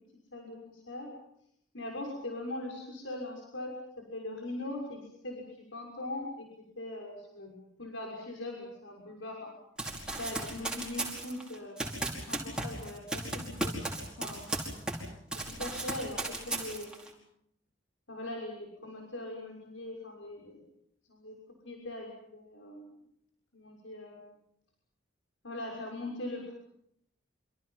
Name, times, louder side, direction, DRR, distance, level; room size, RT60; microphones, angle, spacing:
voice 1, 0.3-1.1 1.7-6.5 6.8-9.5 10.2-12.0 12.3-13.9 14.2-14.5 15.3-17.2 18.1-20.6 21.1-21.3 21.6-23.0 23.5-24.4 25.4-26.5, left 1 dB, 85° left, 0 dB, 6.3 m, -41 dB
Run, 9.8-15.1 15.3-17.1, right 2 dB, 5° right, 5.0 m, -36 dB
28.0 x 27.5 x 5.8 m, 0.74 s
head